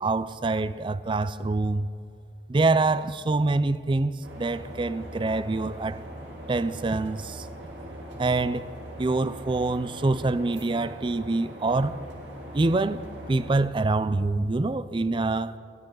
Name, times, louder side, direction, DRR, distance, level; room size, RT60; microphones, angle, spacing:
voice 1, 0.0-1.9 2.5-6.0 6.5-7.5 8.2-8.7 9.0-12.0 12.5-15.6, right 3 dB, 25° right, 0.4 m, -25 dB
sound 1, 4.2-13.5, right 1 dB, 75° right, 2.7 m, -41 dB
20.5 x 16.0 x 3.9 m
head